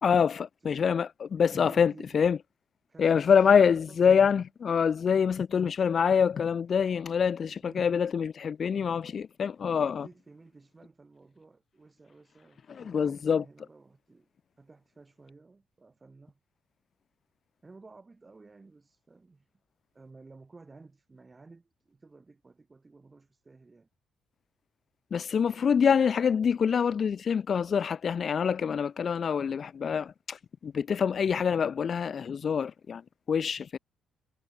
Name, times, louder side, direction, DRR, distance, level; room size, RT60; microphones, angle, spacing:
voice 1, 0.0-2.4 3.0-10.1 12.7-13.4 25.1-33.0 33.3-33.8, left 7 dB, 50° left, 1.0 m, -25 dB
voice 2, 0.6-0.9 1.5-2.4 2.9-4.3 5.5-6.0 7.5-8.0 9.6-14.3 14.6-16.4 17.6-19.5 19.9-23.9, right 3 dB, 25° right, 6.5 m, -54 dB
cardioid pair, 90°, 0 cm